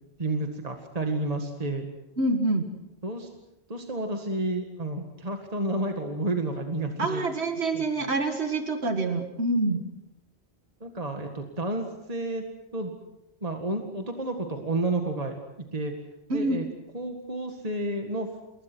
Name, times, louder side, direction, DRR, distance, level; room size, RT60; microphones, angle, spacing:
voice 1, 0.2-1.9 3.0-3.3 3.7-7.2 7.7-7.8 10.8-12.5 12.7-12.9 13.4-15.3 15.7-15.9 16.3-16.7 16.9-18.3, right 2 dB, 35° right, 4 dB, 2.0 m, -30 dB
voice 2, 2.2-2.7 7.0-9.8 16.3-16.6, right 2 dB, 85° right, 6 dB, 2.1 m, -26 dB
27.5 x 21.5 x 6.2 m, 0.92 s
omnidirectional pair, 1.1 m